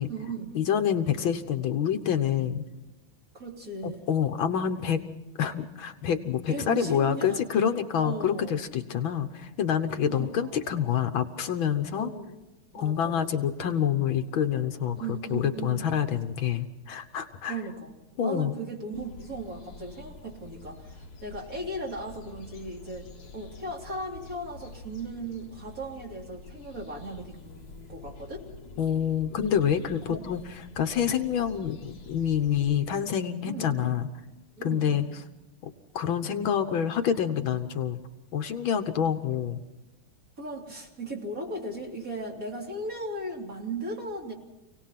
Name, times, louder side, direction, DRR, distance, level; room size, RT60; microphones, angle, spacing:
voice 1, 0.0-0.6 3.3-4.1 6.5-7.4 8.0-8.6 10.1-10.5 11.9-12.3 12.7-13.5 14.9-16.0 17.5-17.9 18.2-28.5 30.1-30.2 33.4-34.0 34.6-35.2 40.4-44.3, right 2 dB, 40° right, -1 dB, 3.7 m, -37 dB
voice 2, 0.6-2.6 3.8-5.0 5.4-12.1 12.7-17.6 18.2-18.5 28.8-30.4 30.8-34.1 34.6-35.1 35.6-38.0 38.3-39.6, left 8 dB, 70° left, 8 dB, 1.8 m, -27 dB
sound 1, 18.9-32.8, left 3 dB, 50° left, 2.0 m, -47 dB
28.0 x 18.0 x 5.9 m, 0.98 s
omnidirectional pair, 2.3 m